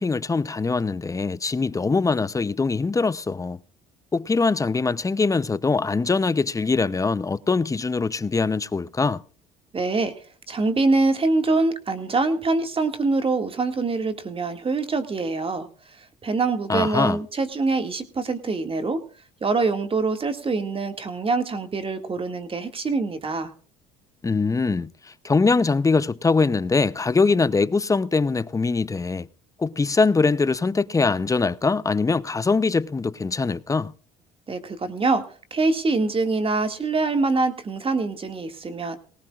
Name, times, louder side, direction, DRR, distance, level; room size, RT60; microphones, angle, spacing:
voice 1, 0.0-3.6 4.1-9.2 16.7-17.2 24.2-24.9 25.2-29.3 29.6-33.9, left 4 dB, 20° left, 0.7 m, -22 dB
voice 2, 9.7-10.1 10.5-15.7 16.2-19.0 19.4-23.5 34.5-35.3 35.5-39.0, right 3 dB, 30° right, 2.2 m, -24 dB
19.5 x 18.0 x 2.5 m
supercardioid pair, 80°, 18 cm